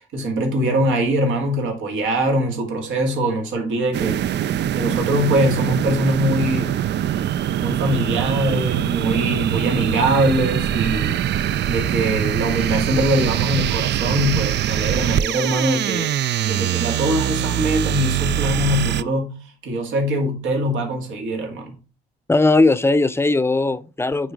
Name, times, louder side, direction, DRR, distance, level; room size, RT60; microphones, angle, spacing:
voice 1, 0.1-6.7 7.6-21.8, right 1 dB, 80° right, 2.1 m, -22 dB
sound 1, 3.9-19.0, right 11 dB, 60° right, 0.5 m, -23 dB
voice 2, 22.3-24.3, left 2 dB, 10° left, 0.6 m, -18 dB
9.0 x 3.9 x 4.7 m
cardioid pair, 90°, 20 cm